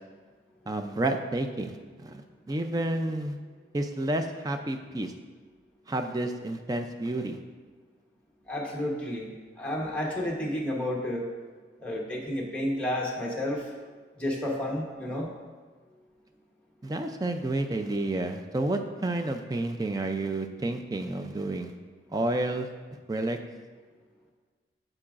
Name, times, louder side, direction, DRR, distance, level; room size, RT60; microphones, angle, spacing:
voice 1, 0.7-2.2 2.5-3.4 3.7-5.1 5.9-7.4 16.8-21.7 22.1-22.7 23.1-23.4, right 2 dB, 20° right, 6 dB, 0.4 m, -30 dB
voice 2, 8.5-9.3 9.6-11.3 11.8-13.7 14.2-15.3, left 1 dB, 5° left, -3 dB, 1.0 m, -31 dB
8.4 x 7.8 x 2.5 m, 1.5 s
head